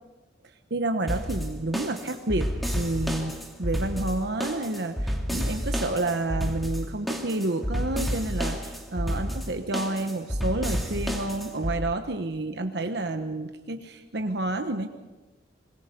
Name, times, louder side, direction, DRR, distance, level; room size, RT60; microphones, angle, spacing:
voice 1, 0.7-2.5 2.7-14.9, right 2 dB, 65° right, 6 dB, 1.1 m, -30 dB
sound 1, 1.1-11.8, equal, ahead, 2.7 m, -30 dB
25.5 x 21.5 x 5.3 m, 1.2 s
head